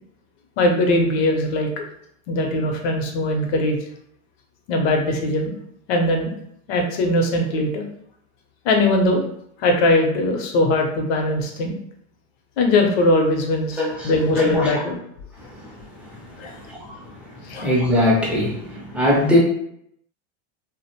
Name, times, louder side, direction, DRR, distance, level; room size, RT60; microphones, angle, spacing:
voice 1, 0.6-1.8 2.3-3.8 4.7-5.6 5.9-6.3 6.7-7.8 8.6-9.2 9.6-11.7 12.6-15.0 16.4-16.5 17.5-17.7, left 1 dB, 60° left, 2 dB, 0.7 m, -20 dB
voice 2, 13.8-14.8 15.4-15.7 16.0-19.4, left 1 dB, 5° right, -5 dB, 0.5 m, -22 dB
2.5 x 2.1 x 2.8 m, 0.71 s
supercardioid pair, 145°, 34 cm